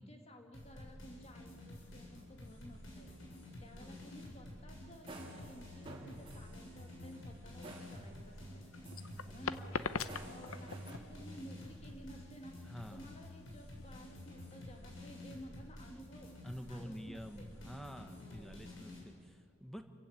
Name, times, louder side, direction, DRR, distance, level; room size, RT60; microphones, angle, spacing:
voice 1, 0.0-8.7 9.2-16.3 16.7-17.7 18.2-18.7, equal, 30° left, 3 dB, 2.0 m, -55 dB
sound 1, 0.5-19.0, left 1 dB, 60° left, 7.2 m, -50 dB
voice 2, 3.8-4.1 9.1-9.5 12.6-13.1 16.4-19.8, equal, ahead, 6 dB, 1.4 m, -49 dB
sound 2, 4.9-8.6 8.8-11.0, right 2 dB, 25° right, 3.1 m, -54 dB
sound 3, 8.3-14.3, left 5 dB, 80° left, 0.9 m, -42 dB
28.0 x 16.0 x 8.7 m, 2.3 s
head